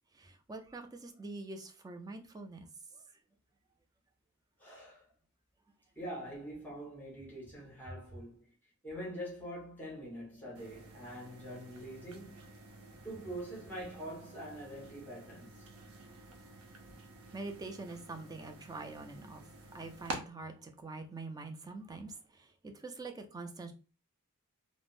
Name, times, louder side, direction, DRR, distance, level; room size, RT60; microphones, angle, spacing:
voice 1, 0.1-2.7 2.9-3.0 16.0-16.1 17.3-19.5 19.7-23.7, right 3 dB, 20° right, 0.3 m, -45 dB
voice 2, 4.6-5.1 5.9-8.5 8.8-12.5 13.0-15.5 16.8-17.0, equal, 10° left, 1.2 m, -44 dB
sound 1, 10.6-20.2, right 2 dB, 90° right, 0.7 m, -49 dB
3.4 x 2.0 x 2.4 m
head